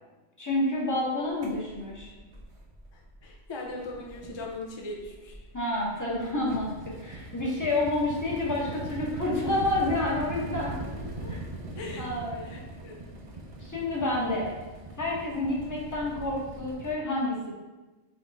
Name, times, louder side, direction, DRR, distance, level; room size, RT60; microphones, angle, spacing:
voice 1, 0.4-2.1 5.5-10.9 11.2-11.4 12.0-12.5 13.6-14.5 15.0-17.5, left 2 dB, 15° left, -5 dB, 0.9 m, -29 dB
sound 1, 1.4-3.4 3.6-16.9, right 2 dB, 40° right, 0.5 m, -41 dB
voice 2, 2.9-5.4 11.8-12.1 12.4-13.0, left 2 dB, 40° left, -1 dB, 0.4 m, -39 dB
4.0 x 3.6 x 3.3 m, 1.1 s
omnidirectional pair, 1.3 m